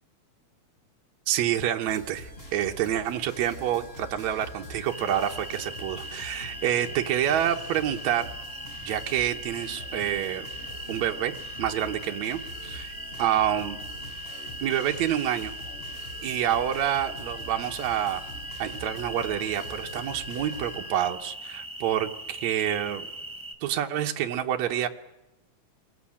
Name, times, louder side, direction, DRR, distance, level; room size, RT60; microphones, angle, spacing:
voice 1, 1.3-8.3 8.8-10.5 10.9-11.3 11.6-13.8 14.6-15.5 16.2-18.2 18.6-23.1 23.6-24.9, right 11 dB, 70° right, 3 dB, 2.3 m, -28 dB
sound 1, 1.9-20.8, equal, 20° left, 6.6 m, -44 dB
sound 2, 2.0-21.0, left 7 dB, 50° left, 4.8 m, -48 dB
sound 3, 4.9-23.5, right 2 dB, 15° right, 0.9 m, -40 dB
28.0 x 21.0 x 8.7 m, 0.99 s
omnidirectional pair, 3.3 m